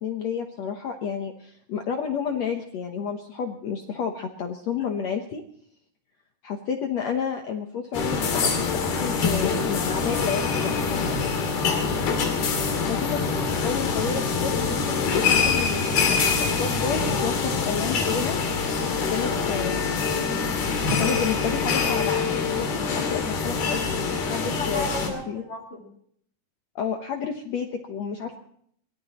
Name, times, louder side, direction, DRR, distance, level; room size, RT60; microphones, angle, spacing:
voice 1, 0.0-5.4 6.4-11.2 12.9-18.4 19.1-20.1 20.9-25.4 26.7-28.4, left 7 dB, 70° left, 4 dB, 1.7 m, -31 dB
sound 1, 7.9-25.1, left 5 dB, 85° left, 4.5 m, -25 dB
voice 2, 11.7-12.4 24.4-25.8, left 1 dB, 40° left, 0 dB, 3.1 m, -35 dB
24.0 x 17.5 x 3.0 m, 0.65 s
omnidirectional pair, 4.3 m